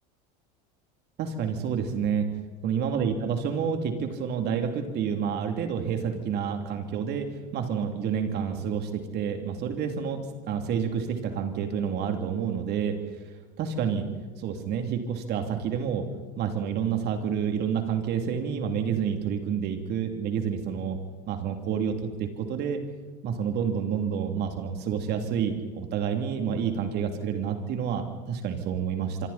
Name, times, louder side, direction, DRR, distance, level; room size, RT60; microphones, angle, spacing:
voice 1, 1.2-2.3 2.6-13.0 13.6-14.0 14.4-16.1 16.4-21.0 21.3-22.8 23.2-29.3, right 7 dB, 50° right, 5 dB, 3.2 m, -29 dB
25.5 x 24.5 x 4.4 m, 1.3 s
supercardioid pair, 95°, 21 cm